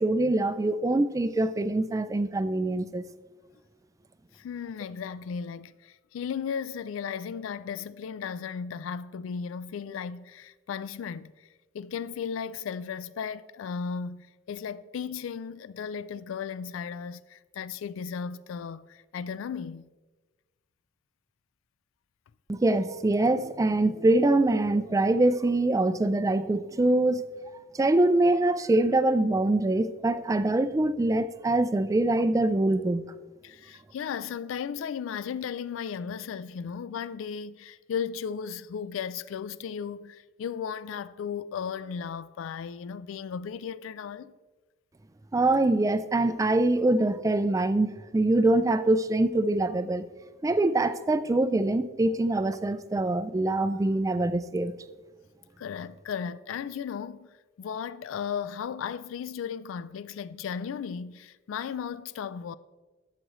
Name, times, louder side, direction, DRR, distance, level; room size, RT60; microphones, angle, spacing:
voice 1, 0.0-3.0 22.5-27.2 27.7-33.1 45.3-50.0 50.4-54.7, right 2 dB, 15° right, 0.3 m, -24 dB
voice 2, 4.3-11.5 11.7-19.9 33.4-44.3 55.6-57.3 57.6-62.5, left 7 dB, 80° left, 0.3 m, -35 dB
12.5 x 7.5 x 3.1 m
head